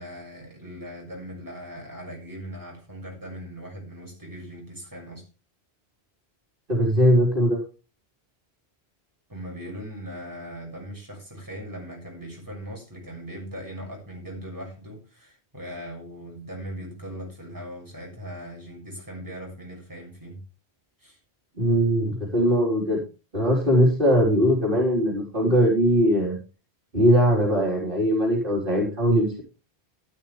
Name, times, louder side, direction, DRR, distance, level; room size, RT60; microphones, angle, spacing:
voice 1, 0.0-5.2 9.3-20.4 21.0-21.2, equal, 20° right, 6.6 m, -39 dB
voice 2, 6.7-7.6 21.6-23.0 23.3-26.4 26.9-29.4, equal, 55° right, 4.5 m, -20 dB
13.0 x 12.5 x 3.4 m
omnidirectional pair, 1.1 m